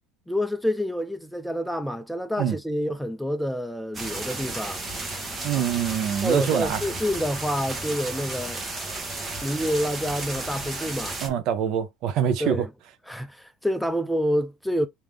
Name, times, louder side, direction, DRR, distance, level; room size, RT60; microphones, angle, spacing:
voice 1, 0.3-4.8 5.5-5.7 6.2-8.6 9.4-11.2 12.4-12.7 13.1-14.9, equal, ahead, 0.5 m, -28 dB
sound 1, 3.9-11.3, right 2 dB, 25° right, 1.1 m, -33 dB
voice 2, 5.4-6.8 11.2-12.6, right 9 dB, 60° right, 0.8 m, -25 dB
3.5 x 2.8 x 3.3 m
cardioid pair, 125°, 0 cm